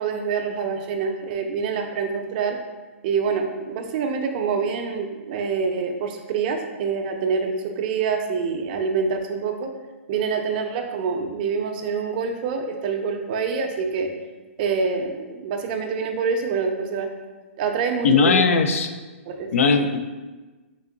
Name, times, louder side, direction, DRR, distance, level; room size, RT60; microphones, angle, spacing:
voice 1, 0.0-2.6 3.0-9.7 10.1-14.1 14.6-17.1 17.6-18.6 19.3-19.5, right 5 dB, 40° right, 4 dB, 0.5 m, -26 dB
voice 2, 18.0-18.9 19.5-20.0, left 5 dB, 75° left, 8 dB, 0.4 m, -18 dB
3.6 x 2.8 x 3.7 m, 1.2 s
hypercardioid pair, 150°, 7 cm